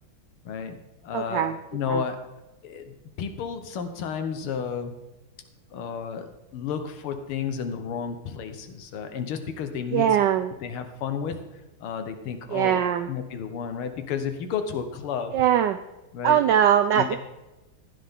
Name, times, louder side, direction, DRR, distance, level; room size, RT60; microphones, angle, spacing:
voice 1, 0.5-0.8 1.0-1.5 1.7-2.2 2.6-4.9 5.7-10.1 10.6-11.4 11.8-12.8 13.1-15.4 16.1-16.4 17.0-17.2, left 7 dB, 80° left, 8 dB, 2.0 m, -32 dB
voice 2, 1.1-1.6 1.9-2.0 9.9-10.5 12.5-13.1 15.3-15.8 16.2-17.2, right 10 dB, 80° right, 9 dB, 1.0 m, -21 dB
15.5 x 9.4 x 3.7 m, 1.1 s
omnidirectional pair, 2.4 m